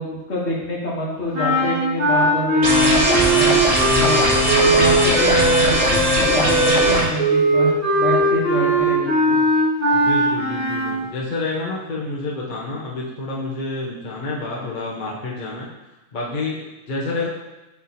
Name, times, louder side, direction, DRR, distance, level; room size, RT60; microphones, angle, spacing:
voice 1, 0.0-3.6 4.0-4.2 4.6-9.4, equal, 60° left, -4 dB, 1.6 m, -26 dB
sound 1, 1.3-11.0, right 1 dB, 30° right, 2.0 m, -19 dB
sound 2, 2.6-7.0, equal, 75° right, 1.7 m, -19 dB
voice 2, 3.9-4.6 9.9-15.7 16.1-17.3, left 3 dB, 40° left, -4 dB, 0.9 m, -29 dB
6.5 x 3.6 x 4.1 m, 1.0 s
omnidirectional pair, 1.3 m